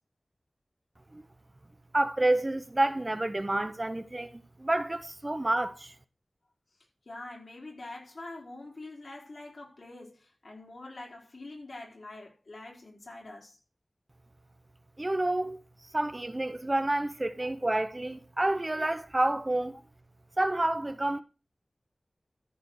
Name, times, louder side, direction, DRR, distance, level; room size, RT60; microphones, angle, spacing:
voice 1, 1.9-5.9 15.0-15.6 15.9-19.7 20.4-21.2, right 1 dB, 30° right, 0.9 m, -29 dB
voice 2, 7.0-13.6, left 2 dB, 65° left, 4.9 m, -45 dB
14.0 x 5.0 x 6.4 m
wide cardioid pair, 80°, 0 cm